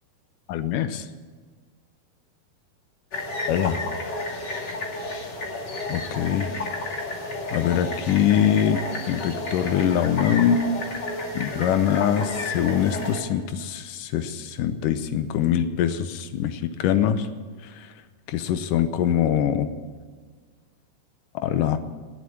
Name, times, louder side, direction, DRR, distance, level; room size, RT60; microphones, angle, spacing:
voice 1, 0.5-1.1 3.5-3.9 5.9-6.5 7.5-10.7 11.3-17.3 18.3-19.7 21.3-21.8, left 9 dB, 70° left, 10 dB, 2.2 m, -23 dB
sound 1, 3.1-13.2, left 2 dB, 35° left, 2.1 m, -31 dB
20.0 x 8.2 x 8.7 m, 1.5 s
omnidirectional pair, 4.4 m